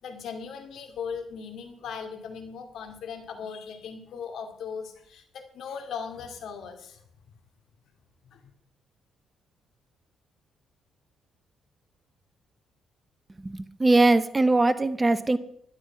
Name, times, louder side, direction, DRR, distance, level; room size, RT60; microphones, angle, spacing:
voice 1, 0.0-7.0 8.3-8.4, left 6 dB, 70° left, 6 dB, 2.3 m, -38 dB
voice 2, 13.4-15.4, right 2 dB, 20° right, 15 dB, 0.7 m, -21 dB
11.5 x 11.5 x 5.8 m, 0.67 s
cardioid pair, 90°, 0 cm